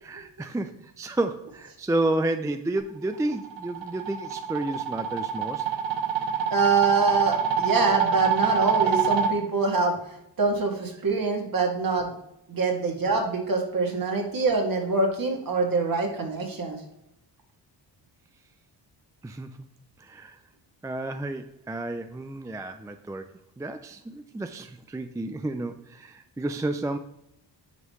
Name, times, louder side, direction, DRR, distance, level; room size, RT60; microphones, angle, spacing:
voice 1, 0.0-5.7 6.2-6.4 14.0-14.1 19.2-19.5 20.0-20.4 20.8-23.3 23.6-27.0, right 2 dB, 10° right, 8 dB, 0.4 m, -31 dB
sound 1, 3.1-9.3, right 7 dB, 80° right, 1.1 m, -26 dB
voice 2, 6.5-9.9 10.4-12.1 12.5-16.8, right 3 dB, 50° right, 1 dB, 2.2 m, -24 dB
9.5 x 5.5 x 3.1 m, 0.80 s
cardioid pair, 85°, 44 cm